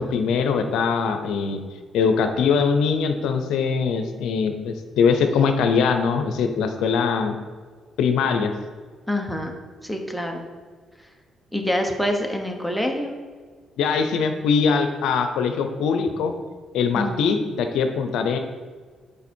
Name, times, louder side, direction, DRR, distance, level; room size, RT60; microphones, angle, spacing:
voice 1, 0.0-1.6 1.9-7.4 8.0-8.5 13.8-16.3 16.7-18.4, left 5 dB, 85° left, 7 dB, 0.6 m, -22 dB
voice 2, 9.1-9.5 9.8-10.4 11.5-13.1 17.0-17.4, left 1 dB, ahead, 2 dB, 1.1 m, -26 dB
7.0 x 4.9 x 4.4 m, 1.5 s
cardioid pair, 90°, 0 cm